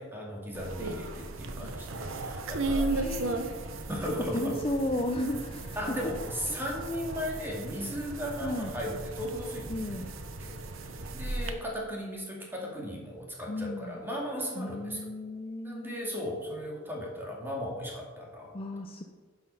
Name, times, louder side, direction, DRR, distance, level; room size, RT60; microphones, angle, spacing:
voice 1, 0.0-2.9 3.9-4.5 5.8-9.7 10.4-15.0 15.6-18.5, equal, 10° right, -2 dB, 2.3 m, -36 dB
sound 1, 0.5-11.5, right 2 dB, 80° right, 1.0 m, -36 dB
voice 2, 2.9-3.7 4.3-6.0 8.4-8.7 9.7-10.1 13.5-14.0 14.6-16.0 18.5-19.0, left 1 dB, 30° left, 4 dB, 0.6 m, -34 dB
11.5 x 6.1 x 5.6 m, 1.4 s
head